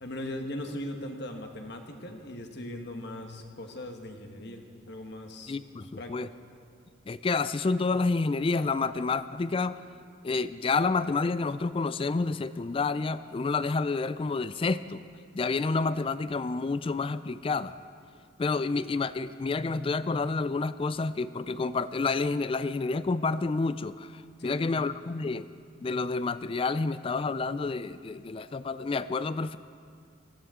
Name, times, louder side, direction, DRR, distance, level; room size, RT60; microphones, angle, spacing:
voice 1, 0.0-5.5 6.0-6.2 24.4-24.9, left 1 dB, 55° left, 4 dB, 1.4 m, -39 dB
voice 2, 5.5-6.3 7.1-9.8 10.2-15.0 15.3-17.7 18.4-25.5 25.8-29.6, left 3 dB, 25° left, 14 dB, 0.3 m, -29 dB
19.5 x 15.5 x 3.7 m, 2.2 s
head